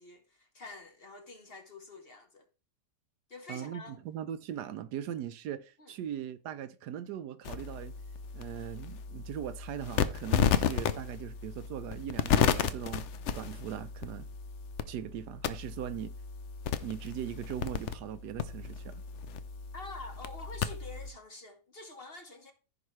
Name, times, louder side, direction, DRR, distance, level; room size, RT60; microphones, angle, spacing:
voice 1, 0.0-2.5 3.3-4.0 5.8-5.9 19.7-22.5, left 3 dB, 40° left, 1.1 m, -47 dB
voice 2, 3.5-8.0 8.3-13.1 13.3-14.3 14.9-16.1 16.8-19.0, right 10 dB, 75° right, 1.2 m, -40 dB
sound 1, 7.4-21.1, left 8 dB, 65° left, 0.7 m, -33 dB
15.0 x 5.0 x 3.1 m
omnidirectional pair, 1.8 m